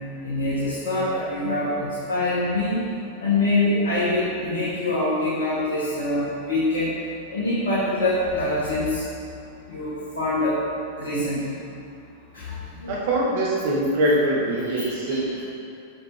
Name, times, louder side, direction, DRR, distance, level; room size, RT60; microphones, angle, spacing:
voice 1, 0.2-2.8 3.2-7.0 7.3-9.0 9.6-10.6 11.0-11.5 12.3-13.0 14.6-15.4, left 2 dB, 65° left, -11 dB, 1.8 m, -25 dB
voice 2, 12.9-15.4, right 1 dB, 50° right, -4 dB, 1.1 m, -23 dB
7.3 x 7.2 x 3.3 m, 2.5 s
figure-of-eight pair, 90°, 0 cm